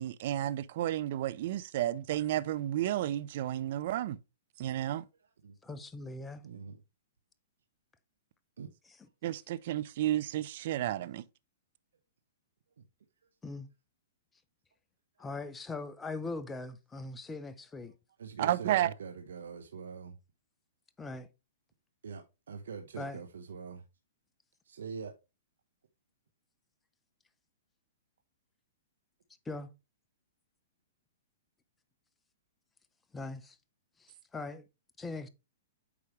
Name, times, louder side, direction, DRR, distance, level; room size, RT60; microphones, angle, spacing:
voice 1, 0.0-4.2 4.6-5.0 9.2-11.2 18.4-18.9, right 13 dB, 55° right, 0.6 m, -32 dB
voice 2, 5.6-6.4 13.4-13.7 15.2-17.9 21.0-21.3 23.0-23.2 29.5-29.7 33.1-33.6 34.0-34.6 35.0-35.3, left 3 dB, 10° left, 0.8 m, -40 dB
voice 3, 6.4-6.8 8.6-8.7 18.2-20.2 22.0-23.8 24.6-25.1, right 5 dB, 80° right, 1.0 m, -43 dB
8.6 x 4.9 x 3.2 m
hypercardioid pair, 130°, 0 cm